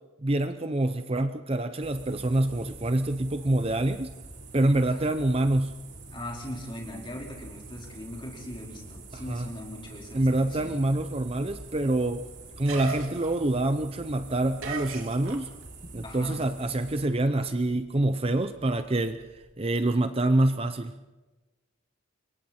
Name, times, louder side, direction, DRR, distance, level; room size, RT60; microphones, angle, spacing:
voice 1, 0.2-4.1 4.5-5.8 9.1-9.5 10.1-12.3 12.6-15.5 15.9-20.9, right 1 dB, 25° right, 10 dB, 0.6 m, -26 dB
sound 1, 1.8-17.1, right 2 dB, 50° right, 3.9 m, -46 dB
voice 2, 6.1-10.7 16.0-16.4, left 1 dB, 25° left, -1 dB, 4.4 m, -40 dB
sound 2, 11.2-15.9 16.2-19.5, right 4 dB, 80° right, 2.8 m, -41 dB
28.5 x 23.0 x 4.4 m, 1.1 s
head